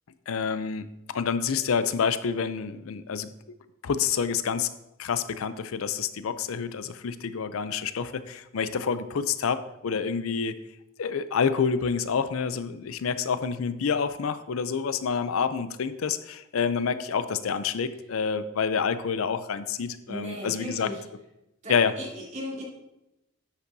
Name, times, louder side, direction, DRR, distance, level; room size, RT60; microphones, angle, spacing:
voice 1, 0.3-0.9 1.1-3.3 3.8-4.7 5.0-10.6 11.0-20.9 21.7-21.9, left 6 dB, 85° left, 12 dB, 0.5 m, -28 dB
voice 2, 20.1-21.0 21.6-22.6, equal, 35° right, -4 dB, 2.9 m, -37 dB
10.5 x 8.1 x 2.7 m, 0.91 s
head